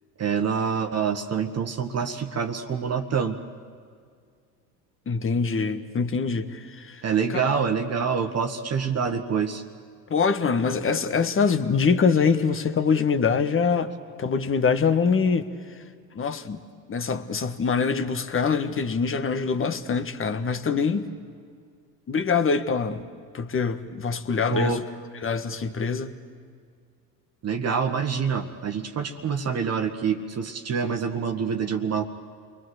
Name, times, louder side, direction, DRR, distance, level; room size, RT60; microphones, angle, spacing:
voice 1, 0.2-3.4 7.0-9.6 24.5-24.8 27.4-32.0, right 6 dB, 30° right, 5 dB, 1.5 m, -26 dB
voice 2, 5.1-7.0 7.3-7.4 10.1-13.9 14.2-15.5 16.1-16.6 16.9-21.1 22.1-23.0 23.3-24.8 25.2-26.1, left 5 dB, 25° left, 10 dB, 1.5 m, -24 dB
29.5 x 21.5 x 8.0 m, 2.1 s
hypercardioid pair, 80°, 48 cm